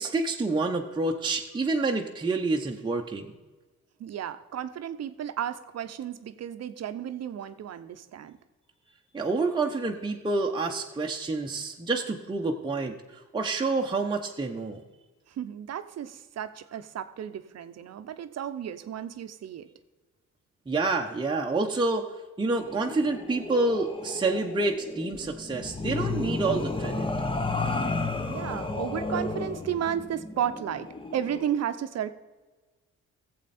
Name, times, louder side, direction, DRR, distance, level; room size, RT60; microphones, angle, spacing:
voice 1, 0.0-3.3 9.1-14.8 20.7-22.1 22.4-27.1, right 3 dB, 15° right, 1 dB, 0.9 m, -28 dB
voice 2, 4.0-8.4 15.3-19.7 28.3-32.1, right 9 dB, 55° right, 10 dB, 0.8 m, -33 dB
sound 1, 22.6-31.6, left 3 dB, 15° left, 0.9 m, -33 dB
15.0 x 7.7 x 4.3 m, 1.3 s
cardioid pair, 90°, 30 cm